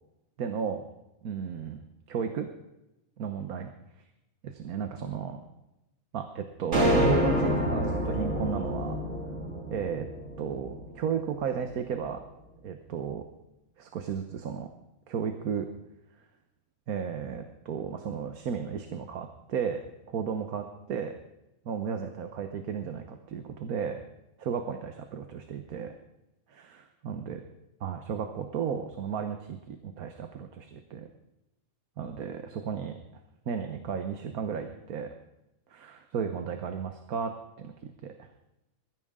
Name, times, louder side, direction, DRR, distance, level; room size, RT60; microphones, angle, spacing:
voice 1, 0.4-0.8 1.2-2.5 3.2-3.7 4.4-5.4 6.1-9.0 9.7-10.1 10.4-12.2 12.6-13.2 13.8-14.7 15.1-15.7 16.9-21.1 21.6-24.0 24.4-25.9 26.5-27.4 27.8-31.1 32.0-33.0 33.5-35.1 35.7-38.3, right 7 dB, 85° right, 6 dB, 1.5 m, -34 dB
sound 1, 6.7-11.1, equal, 55° right, 2.4 m, -27 dB
21.5 x 14.5 x 3.7 m, 0.93 s
omnidirectional pair, 1.5 m